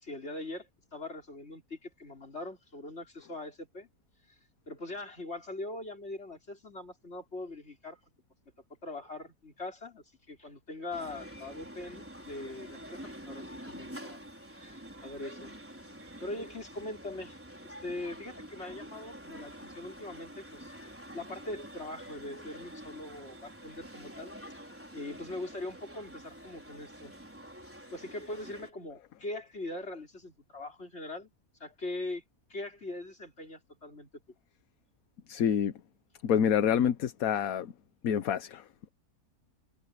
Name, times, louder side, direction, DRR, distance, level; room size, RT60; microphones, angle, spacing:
voice 1, 0.0-3.9 4.7-8.0 8.8-14.2 14.5-15.6 16.2-20.7 21.1-24.6 24.9-27.1 27.9-31.3 31.6-32.2 32.5-34.1, left 2 dB, 40° left, 4.7 m, -41 dB
sound 1, 10.9-28.7, equal, 10° right, 4.6 m, -47 dB
voice 2, 35.3-35.7 36.2-37.7 38.0-38.9, left 8 dB, 65° left, 1.3 m, -27 dB
omnidirectional pair, 1.7 m